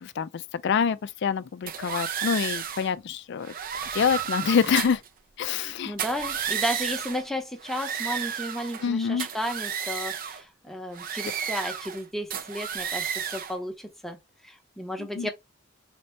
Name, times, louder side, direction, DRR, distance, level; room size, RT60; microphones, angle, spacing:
voice 1, 0.0-3.5 3.9-5.0 5.4-5.9 8.8-9.3 15.0-15.3, left 6 dB, 55° left, 0.3 m, -26 dB
sound 1, 1.7-2.9 3.4-5.1 5.9-7.2 7.6-8.9 9.2-10.4 10.9-12.0 12.3-13.6, right 8 dB, 40° right, 0.4 m, -32 dB
voice 2, 5.5-14.2 14.4-15.3, equal, ahead, 0.7 m, -33 dB
4.3 x 2.7 x 3.1 m
head